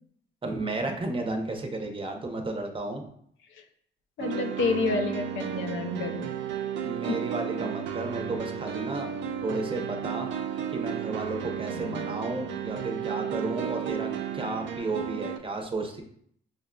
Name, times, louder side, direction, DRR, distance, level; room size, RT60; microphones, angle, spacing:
voice 1, 0.4-3.1 6.8-9.1 9.4-10.3 10.7-16.0, right 2 dB, 25° right, 3 dB, 0.6 m, -33 dB
voice 2, 4.2-6.3 7.1-7.2 11.7-12.0, left 4 dB, 80° left, 6 dB, 0.5 m, -29 dB
sound 1, 4.2-15.4, right 9 dB, 65° right, 0.4 m, -33 dB
5.0 x 2.4 x 2.2 m, 0.66 s
cardioid pair, 90°, 20 cm